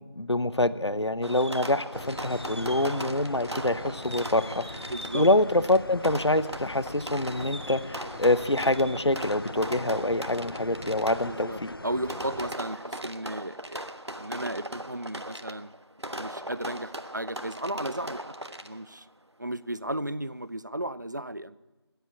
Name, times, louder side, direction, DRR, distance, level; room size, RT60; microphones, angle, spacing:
voice 1, 0.0-4.9 5.1-11.7, left 1 dB, 85° left, 15 dB, 0.9 m, -26 dB
Fireworks, 1.2-19.0, right 1 dB, 85° right, 1.3 m, -39 dB
sound 1, 1.9-12.6, left 2 dB, 55° left, 0.5 m, -42 dB
voice 2, 4.9-5.3 11.3-13.9 14.2-15.7 16.2-19.1 19.4-21.6, right 1 dB, 45° right, 16 dB, 0.5 m, -35 dB
21.5 x 8.2 x 8.2 m, 1.2 s
figure-of-eight pair, 170°, 14 cm